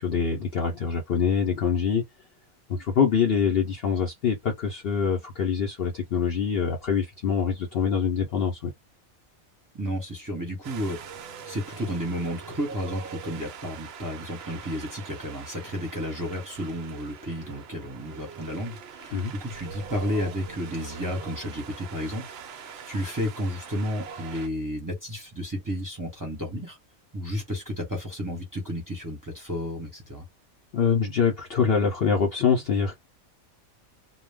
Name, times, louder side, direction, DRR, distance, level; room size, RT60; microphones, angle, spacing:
voice 1, 0.0-2.0 2.7-8.7 19.1-19.3 30.7-33.0, left 6 dB, 60° left, 0.7 m, -24 dB
voice 2, 9.7-11.0 11.5-26.8 27.1-30.3, equal, 15° right, 0.8 m, -32 dB
Wind, 10.6-24.5, right 6 dB, 65° right, 0.6 m, -43 dB
2.2 x 2.1 x 3.4 m
omnidirectional pair, 1.5 m